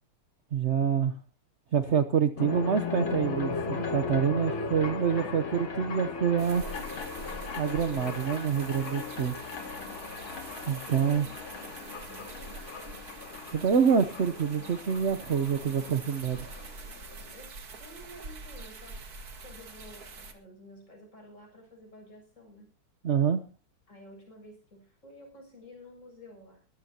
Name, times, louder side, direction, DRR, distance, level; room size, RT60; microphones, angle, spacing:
voice 1, 0.5-1.1 1.7-6.6 7.6-9.3 10.7-11.3 13.5-16.5 23.0-23.4, right 7 dB, 70° right, 8 dB, 0.6 m, -26 dB
sound 1, 2.4-17.3, left 4 dB, 70° left, 3.0 m, -37 dB
sound 2, 6.4-20.3, right 3 dB, 45° right, 2.3 m, -45 dB
voice 2, 9.1-10.0 10.8-12.6 17.3-19.0 19.4-22.7 23.9-26.6, equal, 35° left, 1 dB, 7.6 m, -51 dB
22.5 x 14.0 x 2.8 m, 0.33 s
omnidirectional pair, 2.4 m